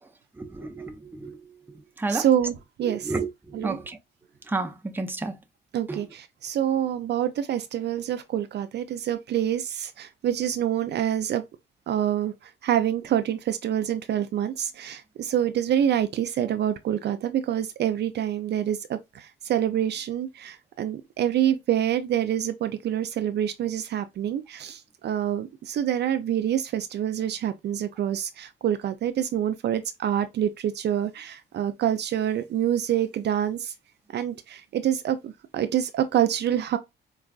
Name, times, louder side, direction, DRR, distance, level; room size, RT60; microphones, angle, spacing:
voice 1, 0.4-1.4 2.0-2.3 3.1-3.3 3.5-4.0 4.5-5.3 5.9-6.0, right 3 dB, 10° right, 0.6 m, -30 dB
voice 2, 2.1-3.1 3.5-3.8 5.7-11.4 11.9-33.7 34.1-36.8, right 10 dB, 60° right, 0.5 m, -26 dB
4.5 x 2.4 x 2.4 m
cardioid pair, 90°, 20 cm